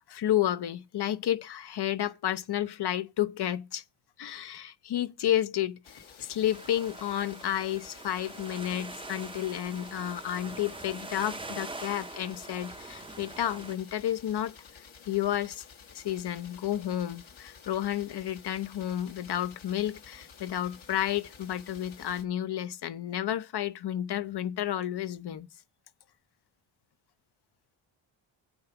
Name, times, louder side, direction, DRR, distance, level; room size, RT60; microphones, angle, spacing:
voice 1, 0.1-3.8 4.2-15.6 15.9-25.5, left 11 dB, 55° left, 0.6 m, -31 dB
sound 1, 5.8-22.3, left 6 dB, 70° left, 1.4 m, -52 dB
sound 2, 6.5-13.7, right 2 dB, 10° right, 0.5 m, -43 dB
7.9 x 5.2 x 5.8 m
wide cardioid pair, 135°, 49 cm